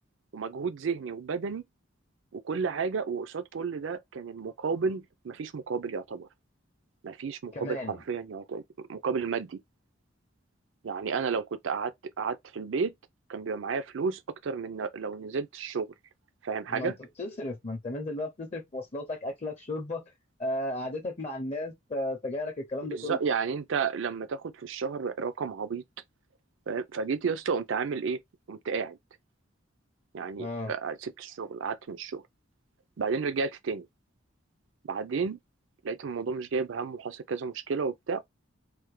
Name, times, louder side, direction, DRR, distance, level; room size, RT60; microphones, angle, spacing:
voice 1, 0.3-1.6 2.3-6.3 7.0-9.6 10.8-12.9 13.3-15.9 16.4-17.0 22.9-25.8 26.7-28.2 28.5-29.0 30.1-32.2 33.0-33.9 34.8-35.4 35.8-38.2, right 5 dB, 70° right, 0.4 m, -32 dB
voice 2, 7.5-8.0 16.7-16.9 17.2-20.1 20.4-23.2 30.4-30.7, left 1 dB, 35° left, 0.5 m, -34 dB
3.3 x 2.1 x 3.1 m
head